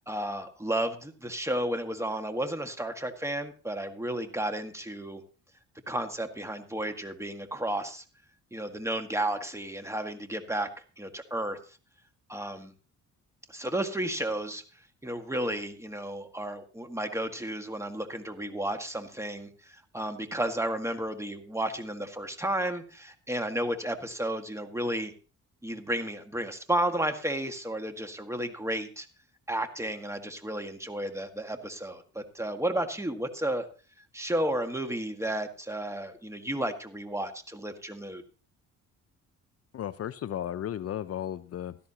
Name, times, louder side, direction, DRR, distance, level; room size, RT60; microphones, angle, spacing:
voice 1, 0.1-5.2 5.9-8.0 8.5-10.7 11.0-11.6 12.3-12.7 13.5-14.6 15.0-25.1 25.6-29.1 29.5-33.7 34.1-38.2, right 1 dB, 10° right, 7 dB, 1.8 m, -32 dB
voice 2, 39.7-41.8, left 10 dB, 50° left, 13 dB, 0.6 m, -34 dB
16.5 x 13.0 x 2.9 m, 0.36 s
cardioid pair, 90°, 30 cm